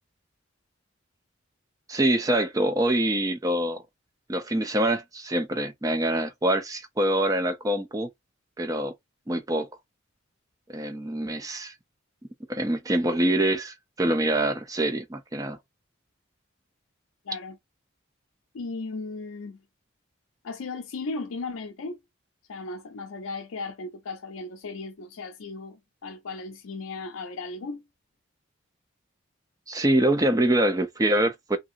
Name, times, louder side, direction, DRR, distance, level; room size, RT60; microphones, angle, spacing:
voice 1, 1.9-3.8 4.3-8.1 8.6-8.9 9.3-9.7 10.7-11.7 12.5-15.6 29.7-31.6, right 1 dB, 15° right, 0.5 m, -25 dB
voice 2, 17.3-17.6 18.5-19.6 20.4-22.0 22.5-27.8, left 3 dB, 85° left, 0.5 m, -36 dB
2.8 x 2.6 x 2.5 m
head